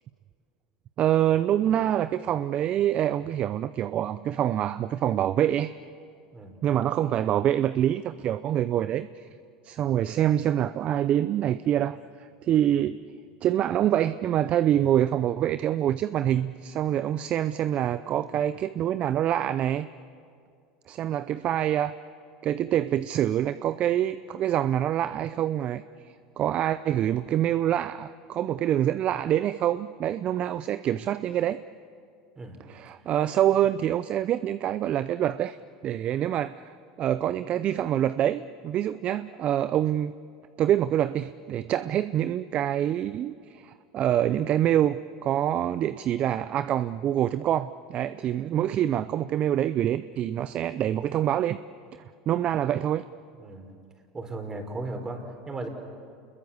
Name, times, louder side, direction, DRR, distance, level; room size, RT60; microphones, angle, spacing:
voice 1, 1.0-5.7 6.6-9.3 9.6-13.0 13.4-19.9 20.9-21.9 22.4-25.8 26.4-31.6 32.7-35.6 35.8-36.7 37.0-40.1 40.6-51.6 52.3-53.0, right 11 dB, 45° right, 14 dB, 0.6 m, -26 dB
voice 2, 54.1-55.7, right 2 dB, 20° right, 4 dB, 4.4 m, -36 dB
28.5 x 21.5 x 7.2 m, 2.3 s
hypercardioid pair, 95°, 3 cm